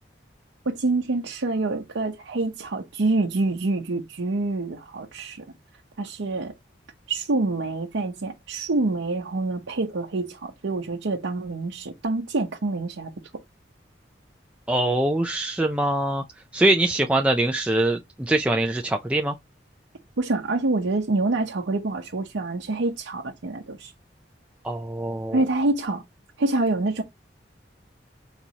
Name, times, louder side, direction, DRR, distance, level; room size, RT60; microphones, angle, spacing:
voice 1, 0.7-5.4 6.0-6.5 7.1-13.1 20.2-23.9 25.3-26.0 26.4-27.0, right 2 dB, 90° right, 0.7 m, -26 dB
voice 2, 14.7-16.2 16.5-19.3 24.6-25.4, right 1 dB, 5° right, 0.3 m, -23 dB
4.5 x 4.0 x 2.8 m
head